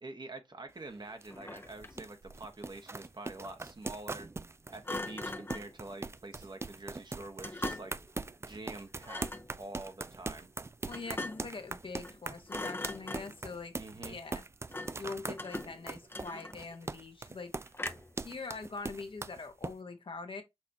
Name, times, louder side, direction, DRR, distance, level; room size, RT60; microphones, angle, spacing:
voice 1, 0.0-4.3 4.7-7.9 8.4-9.3 9.6-10.5 13.7-14.2, right 2 dB, 45° right, 1.1 m, -46 dB
sound 1, 0.7-19.7, right 3 dB, 25° right, 0.3 m, -41 dB
Thump thud, 1.3-2.1 4.8-5.7 7.4-8.1 9.0-9.5 10.9-11.6 12.0-12.2 12.5-13.5 14.7-15.1 15.4-16.8 17.7-18.2, left 2 dB, 20° left, 0.7 m, -41 dB
voice 2, 10.8-13.8 14.0-14.4 15.0-17.5 18.2-20.4, left 4 dB, 55° left, 1.1 m, -43 dB
5.8 x 2.8 x 2.7 m
cardioid pair, 40°, 11 cm